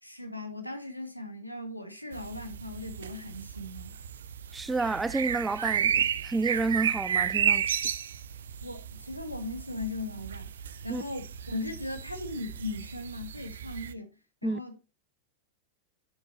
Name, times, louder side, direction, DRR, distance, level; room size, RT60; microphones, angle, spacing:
voice 1, 0.0-4.0 8.6-10.5 10.8-14.1 14.4-14.9, left 2 dB, 90° left, 1.7 m, -38 dB
sound 1, 2.1-13.9, right 8 dB, 65° right, 0.6 m, -33 dB
voice 2, 4.5-7.8 10.9-11.0 14.4-14.6, right 3 dB, 10° right, 0.5 m, -30 dB
8.9 x 6.9 x 4.1 m
figure-of-eight pair, 90°, 0 cm